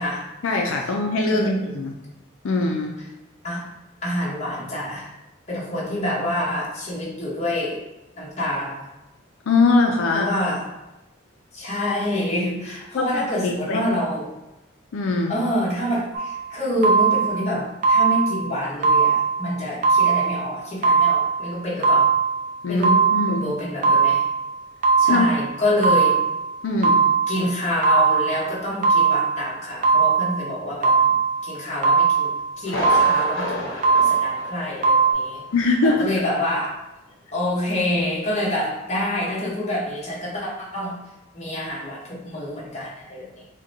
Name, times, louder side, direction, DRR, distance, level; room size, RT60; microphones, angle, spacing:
voice 1, 0.4-1.9 2.4-3.0 9.5-10.3 12.9-13.1 13.4-13.8 14.9-15.3 22.6-23.5 25.1-25.3 26.6-27.0 35.5-36.3, left 3 dB, 90° left, 2 dB, 0.4 m, -21 dB
voice 2, 1.3-1.7 3.4-3.6 4.0-5.1 5.5-7.8 8.2-8.9 10.1-10.7 11.5-14.3 15.3-22.1 22.7-23.0 23.3-24.2 25.0-26.2 27.3-31.1 31.4-35.4 35.8-36.7 37.3-41.0 41.3-43.5, left 1 dB, 35° left, -6 dB, 1.1 m, -27 dB
sound 1, 16.1-16.4 16.8-17.4 17.8-18.4 18.8-19.4 19.8-20.4 20.8-21.4 21.8-22.4 22.8-23.4 23.8-24.4 24.8-25.4 25.8-26.4 26.8-27.4 27.8-28.4 28.8-29.4 29.8-30.4 30.8-31.4 31.8-32.4 32.8-33.4 33.8-34.4 34.8-35.1, right 5 dB, 40° right, 0.5 m, -19 dB
Thunder, 32.6-35.2 35.5-35.6 36.1-36.2, left 1 dB, 70° left, 0.9 m, -30 dB
6.2 x 2.2 x 2.7 m, 0.96 s
head